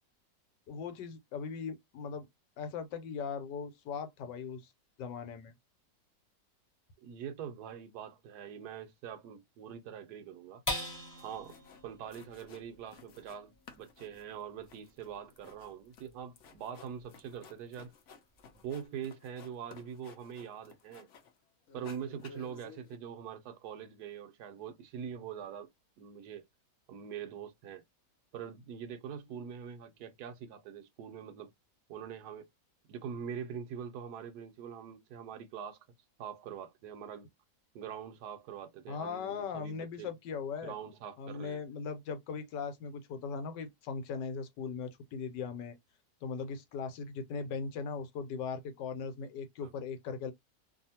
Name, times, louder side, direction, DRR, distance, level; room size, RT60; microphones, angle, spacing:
voice 1, 0.7-2.3 2.6-4.7 5.0-5.5 38.9-40.7 41.2-45.8 46.2-50.3, left 5 dB, 90° left, 1.3 m, -39 dB
voice 2, 7.0-10.6 11.2-11.5 11.8-17.9 18.6-21.1 21.7-25.7 26.0-26.5 26.9-27.8 28.3-31.5 31.9-32.5 32.9-35.8 36.2-37.3 37.7-40.2 40.6-41.6 49.6-49.7, right 8 dB, 70° right, 1.1 m, -43 dB
sound 1, 10.7-17.4 17.8-17.9 18.3-18.8, left 1 dB, 15° left, 0.8 m, -44 dB
sound 2, 11.2-11.8 12.1-13.4 13.7-21.4 21.7-23.0, left 5 dB, 65° left, 0.7 m, -56 dB
2.7 x 2.4 x 2.7 m
omnidirectional pair, 1.9 m